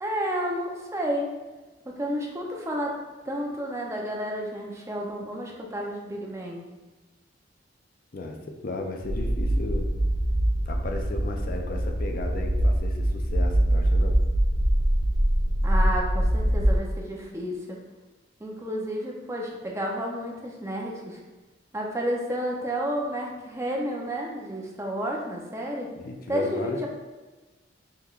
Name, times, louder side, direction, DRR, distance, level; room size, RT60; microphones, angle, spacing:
voice 1, 0.0-1.3 1.9-2.9 3.2-6.6 15.6-17.8 18.4-21.2 21.7-25.9 26.3-26.9, equal, 15° right, -1 dB, 0.5 m, -31 dB
voice 2, 8.1-9.9 10.7-14.2 25.9-26.9, left 2 dB, 50° left, 3 dB, 0.4 m, -35 dB
sound 1, 9.0-16.8, right 1 dB, 80° right, 0.7 m, -23 dB
5.6 x 3.1 x 2.4 m, 1.2 s
head